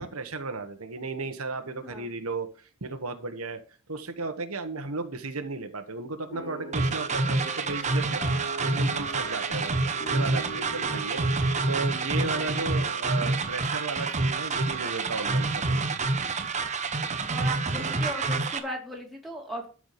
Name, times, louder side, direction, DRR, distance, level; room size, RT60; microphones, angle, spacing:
voice 1, 0.0-3.6 3.9-8.2 8.6-11.2 11.6-16.0, right 3 dB, 85° right, 1.5 m, -35 dB
sound 1, 6.3-14.8, right 2 dB, 65° left, 3.2 m, -41 dB
sound 2, 6.7-18.6, right 3 dB, 35° right, 1.1 m, -27 dB
voice 2, 17.3-19.7, equal, ahead, 3.0 m, -37 dB
12.5 x 5.0 x 6.7 m
head